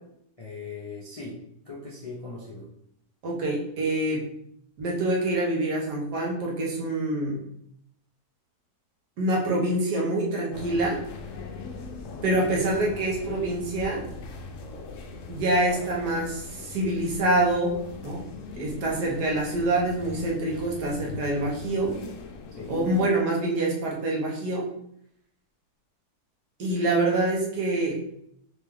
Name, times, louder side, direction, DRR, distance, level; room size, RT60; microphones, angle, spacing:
voice 1, 0.4-2.7 12.0-12.5 22.6-22.8, left 3 dB, 40° left, -7 dB, 0.5 m, -40 dB
voice 2, 3.2-4.3 4.8-7.4 9.2-11.0 12.2-14.0 15.3-17.8 18.0-18.2 18.5-21.9 22.7-24.7 26.6-28.0, right 2 dB, 80° right, -3 dB, 1.6 m, -26 dB
sound 1, 10.5-23.1, left 4 dB, 70° left, 0.8 m, -40 dB
3.7 x 3.3 x 3.5 m, 0.73 s
omnidirectional pair, 1.7 m